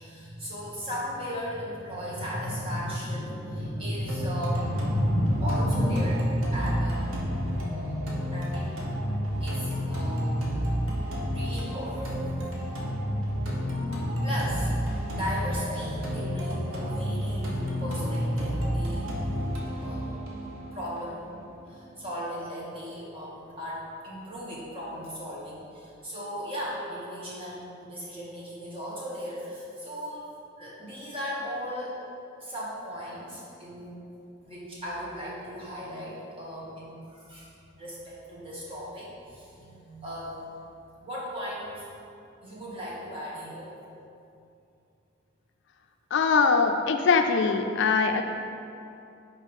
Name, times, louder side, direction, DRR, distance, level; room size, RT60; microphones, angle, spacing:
voice 1, 0.0-8.0 8.3-8.7 9.4-10.2 11.3-12.8 14.2-14.7 15.1-20.1 20.7-21.2 21.7-30.3 30.6-31.9 32.4-33.9 34.4-37.5 37.7-40.5 40.8-41.8 42.4-43.7, equal, 25° right, -7 dB, 1.6 m, -35 dB
sound 1, 4.1-22.1, equal, 90° right, 1.2 m, -30 dB
voice 2, 46.1-48.2, left 5 dB, 60° left, 5 dB, 0.4 m, -22 dB
5.4 x 4.8 x 5.3 m, 2.6 s
head